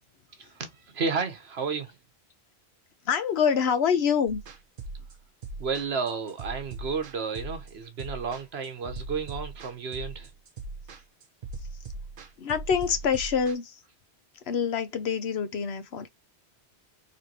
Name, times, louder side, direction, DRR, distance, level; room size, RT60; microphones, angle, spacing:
voice 1, 0.4-1.9 5.6-10.3, right 5 dB, 70° right, 1.2 m, -32 dB
voice 2, 3.0-4.4 12.4-13.8 14.4-16.1, left 7 dB, 75° left, 1.0 m, -26 dB
sound 1, 4.3-13.5, right 3 dB, 55° right, 0.9 m, -40 dB
4.2 x 2.9 x 2.8 m
omnidirectional pair, 1.1 m